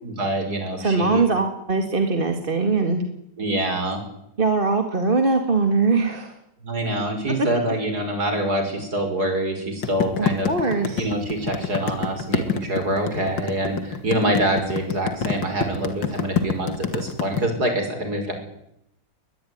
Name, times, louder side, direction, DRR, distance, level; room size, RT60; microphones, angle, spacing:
voice 1, 0.0-1.2 3.4-4.0 6.6-10.5 11.0-18.3, right 1 dB, 55° right, 5 dB, 6.2 m, -25 dB
voice 2, 0.8-3.0 4.4-6.4 10.2-11.1, right 3 dB, 30° right, 5 dB, 2.3 m, -21 dB
sound 1, 9.8-17.4, left 7 dB, 75° left, 2.8 m, -26 dB
21.5 x 21.0 x 9.6 m, 0.79 s
omnidirectional pair, 2.1 m